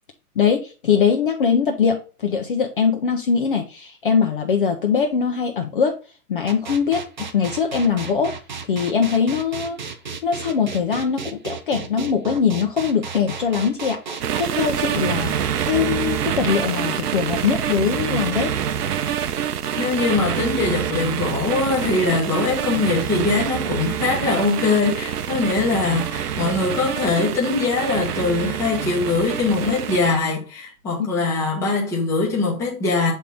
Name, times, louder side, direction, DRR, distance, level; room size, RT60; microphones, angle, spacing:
voice 1, 0.4-6.0 6.3-8.3 8.7-9.8 10.2-15.3 15.7-18.6 31.0-31.2, left 6 dB, 35° left, 0.6 m, -22 dB
sound 1, 6.5-14.5, right 5 dB, 35° right, 0.4 m, -33 dB
sound 2, 14.2-30.2, right 9 dB, 90° right, 0.9 m, -26 dB
voice 2, 19.8-33.1, left 3 dB, 5° left, 0.8 m, -22 dB
7.3 x 3.6 x 3.9 m
hypercardioid pair, 165°, 45 cm